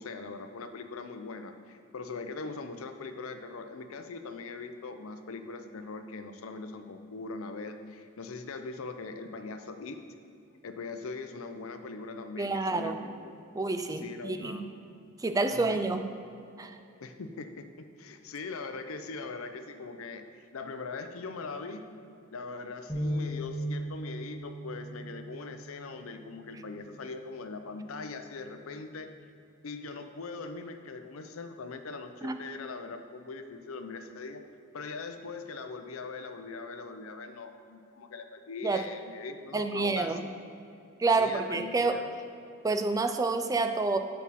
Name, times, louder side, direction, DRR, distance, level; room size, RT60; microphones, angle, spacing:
voice 1, 0.0-10.0 10.6-13.4 14.0-14.6 15.0-15.1 15.5-15.8 17.0-20.2 20.5-21.9 22.3-29.1 29.6-34.4 34.7-40.4 41.2-42.1, left 4 dB, 85° left, 8 dB, 0.5 m, -41 dB
voice 2, 12.4-13.1 13.5-14.6 15.2-16.1 16.6-16.8 32.2-32.4 38.6-38.9 39.5-40.3 41.0-42.0 42.6-44.0, right 3 dB, 15° right, 8 dB, 0.3 m, -28 dB
sound 1, 22.9-29.1, equal, 20° left, 1.2 m, -39 dB
8.3 x 5.5 x 4.1 m, 2.6 s
head